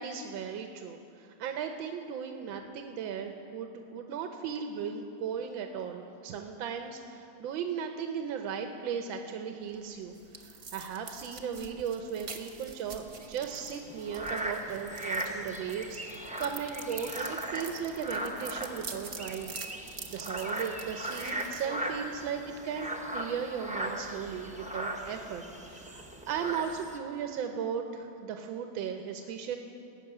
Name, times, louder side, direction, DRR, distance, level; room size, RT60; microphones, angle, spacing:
voice 1, 0.0-19.6 20.1-29.6, right 7 dB, 90° right, 4 dB, 1.6 m, -37 dB
sound 1, 9.6-22.3, right 4 dB, 40° right, 1.0 m, -47 dB
sound 2, 13.1-27.0, right 1 dB, 5° right, 0.5 m, -38 dB
19.0 x 6.7 x 9.0 m, 2.6 s
omnidirectional pair, 2.1 m